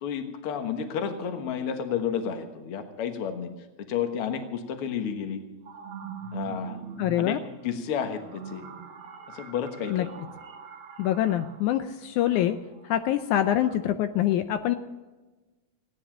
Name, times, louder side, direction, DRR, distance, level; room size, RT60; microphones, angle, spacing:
voice 1, 0.0-3.5 3.8-5.4 6.3-6.8 7.2-7.4 7.6-8.7 9.3-10.1, left 7 dB, 55° left, 7 dB, 2.0 m, -31 dB
sound 1, 5.2-13.8, right 7 dB, 55° right, 1.6 m, -43 dB
voice 2, 7.0-7.4 9.9-10.1 11.0-12.6 12.8-14.8, left 12 dB, 80° left, 9 dB, 2.1 m, -25 dB
18.0 x 9.7 x 7.3 m, 1.2 s
omnidirectional pair, 3.5 m